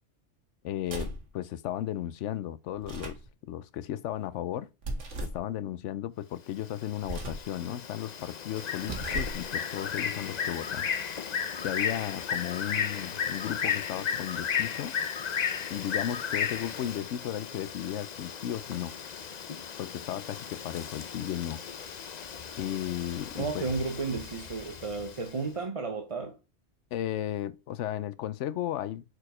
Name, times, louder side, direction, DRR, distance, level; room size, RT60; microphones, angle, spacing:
voice 1, 0.6-3.2 3.5-4.7 5.2-10.9 11.6-14.9 15.7-18.9 19.8-21.6 22.6-23.7 26.9-29.0, left 11 dB, 90° left, 0.9 m, -35 dB
sound 1, 0.8-1.3 2.7-3.3 4.8-5.4 7.0-7.5 8.7-9.5, right 2 dB, 85° right, 2.0 m, -37 dB
Bird, 6.6-25.3, left 7 dB, 45° left, 0.6 m, -35 dB
voice 2, 23.3-26.4, right 4 dB, 35° right, 0.8 m, -33 dB
6.4 x 4.6 x 4.8 m
omnidirectional pair, 1.2 m